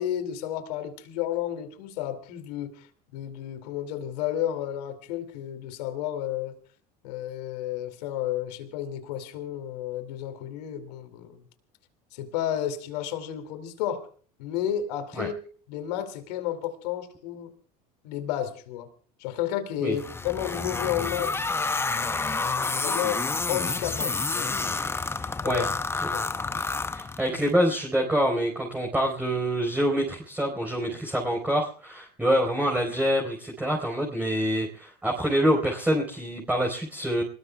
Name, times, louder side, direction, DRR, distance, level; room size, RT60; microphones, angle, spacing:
voice 1, 0.0-2.9 3.1-6.5 7.0-11.5 12.1-14.1 14.4-15.3 15.7-17.5 18.0-18.9 19.2-21.3 22.4-23.2 23.5-24.5 25.4-25.6 26.1-26.2, left 11 dB, 80° left, 9 dB, 2.6 m, -32 dB
sound 1, 20.0-27.5, left 3 dB, 10° left, 0.6 m, -29 dB
voice 2, 25.2-25.7 26.0-26.1 26.9-37.2, equal, 10° right, -1 dB, 4.2 m, -26 dB
26.0 x 20.0 x 2.3 m, 0.42 s
supercardioid pair, 100°, 20 cm